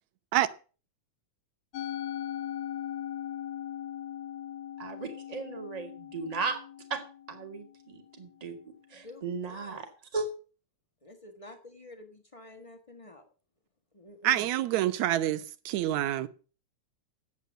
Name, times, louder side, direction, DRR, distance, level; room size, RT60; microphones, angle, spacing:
Musical instrument, 1.7-8.1, left 10 dB, 70° left, 1.9 m, -39 dB
voice 1, 4.8-6.6 6.9-7.0 7.3-8.6 8.9-9.9 10.1-10.3, right 4 dB, 15° right, 1.7 m, -36 dB
voice 2, 8.9-9.8 11.0-13.3 13.9-14.5, left 2 dB, 40° left, 0.4 m, -49 dB
voice 3, 14.2-16.3, right 13 dB, 75° right, 2.1 m, -27 dB
11.0 x 8.5 x 7.5 m
omnidirectional pair, 3.4 m